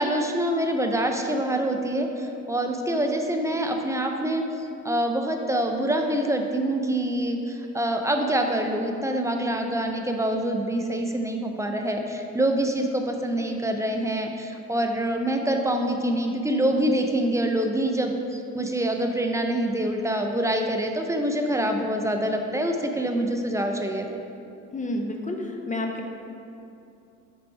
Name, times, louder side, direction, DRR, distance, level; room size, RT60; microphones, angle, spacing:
voice 1, 0.0-4.4 4.8-24.1, right 1 dB, 10° right, 3 dB, 0.5 m, -25 dB
voice 2, 24.7-25.4 25.7-26.1, left 1 dB, 25° left, 3 dB, 0.7 m, -29 dB
5.3 x 4.4 x 4.4 m, 2.7 s
cardioid pair, 90°, 30 cm